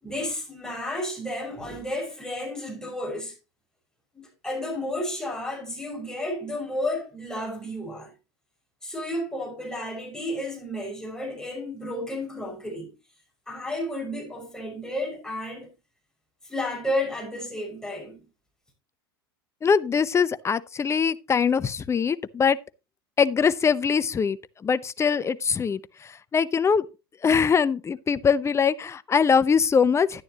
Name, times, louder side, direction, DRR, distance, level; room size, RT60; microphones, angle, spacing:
voice 1, 0.0-3.3 4.1-8.1 8.8-12.9 13.5-15.7 16.4-18.3, left 1 dB, 5° left, 5.9 m, -32 dB
voice 2, 19.6-22.6 23.2-24.4 24.6-25.8 26.3-26.8 27.2-30.2, left 6 dB, 20° left, 0.7 m, -22 dB
11.5 x 10.0 x 2.9 m
hypercardioid pair, 85°, 12 cm